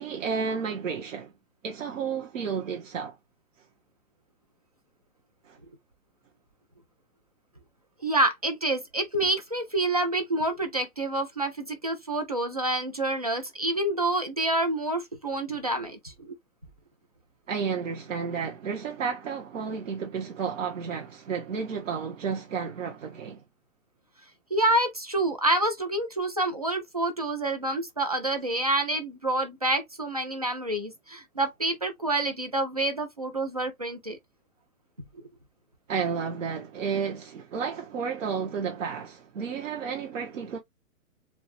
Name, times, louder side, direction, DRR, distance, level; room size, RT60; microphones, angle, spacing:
voice 1, 0.0-1.3 1.6-3.2 5.4-5.6 17.5-23.4 35.9-40.6, right 6 dB, 60° right, 1.1 m, -32 dB
voice 2, 8.0-16.3 24.5-34.2, right 1 dB, 30° right, 0.4 m, -27 dB
4.4 x 2.1 x 3.2 m
hypercardioid pair, 175°, 43 cm